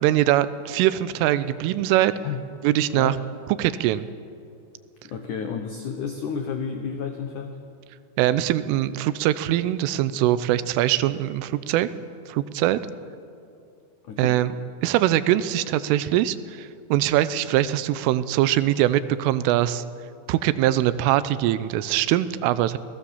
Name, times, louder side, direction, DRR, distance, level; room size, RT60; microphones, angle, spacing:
voice 1, 0.0-2.1 2.6-3.2 3.6-4.1 8.2-11.9 12.3-12.8 14.2-14.6 14.8-19.8 20.3-22.8, right 13 dB, 85° right, 14 dB, 3.3 m, -22 dB
voice 2, 5.0-7.6 14.0-14.4, left 6 dB, 85° left, 5 dB, 1.7 m, -31 dB
29.0 x 19.5 x 7.2 m, 2.5 s
omnidirectional pair, 5.7 m